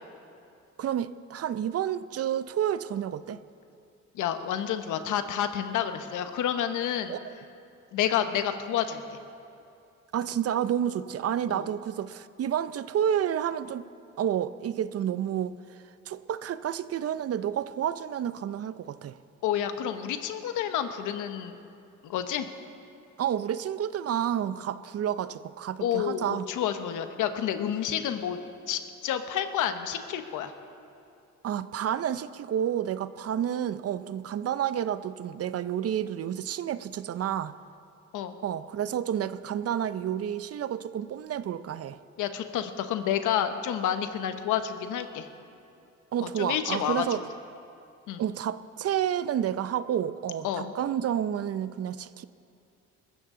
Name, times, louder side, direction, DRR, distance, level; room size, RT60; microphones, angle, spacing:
voice 1, 0.8-3.4 7.1-7.3 10.1-13.9 14.2-15.6 16.1-19.2 23.2-26.5 31.4-37.5 38.4-42.0 46.1-47.2 48.2-52.2, right 10 dB, 50° right, 14 dB, 0.6 m, -30 dB
voice 2, 4.1-7.2 7.9-9.2 11.5-11.7 19.4-21.6 22.0-22.5 25.8-28.4 28.7-30.5 38.1-38.4 42.2-45.3 46.2-47.1 48.1-48.2 50.4-50.7, left 9 dB, 85° left, 9 dB, 1.0 m, -29 dB
20.5 x 14.5 x 3.8 m, 2.6 s
cardioid pair, 90°, 30 cm